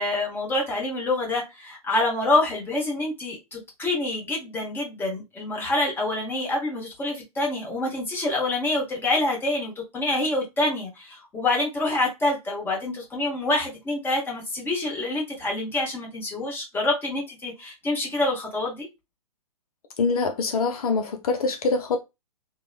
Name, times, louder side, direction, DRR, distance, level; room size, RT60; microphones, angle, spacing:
voice 1, 0.0-18.9, left 2 dB, 10° left, 0.9 m, -26 dB
voice 2, 20.0-22.0, left 4 dB, 65° left, 0.4 m, -24 dB
2.9 x 2.1 x 2.4 m
figure-of-eight pair, 115°, 20 cm